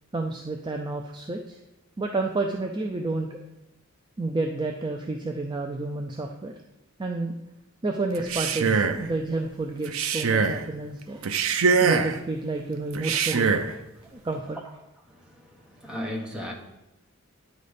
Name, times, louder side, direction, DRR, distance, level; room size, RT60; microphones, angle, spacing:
voice 1, 0.1-1.6 2.0-3.4 4.2-6.5 7.0-7.3 7.8-11.2 11.8-13.6 14.2-14.6, right 2 dB, 20° right, 2 dB, 0.4 m, -30 dB
Male speech man speaking, 8.1-9.1 9.8-10.6 11.2-12.2 12.9-13.7, right 5 dB, 75° right, 0.5 m, -23 dB
voice 2, 15.1-16.5, left 1 dB, 5° right, -1 dB, 1.1 m, -37 dB
9.3 x 4.1 x 5.1 m, 0.98 s
head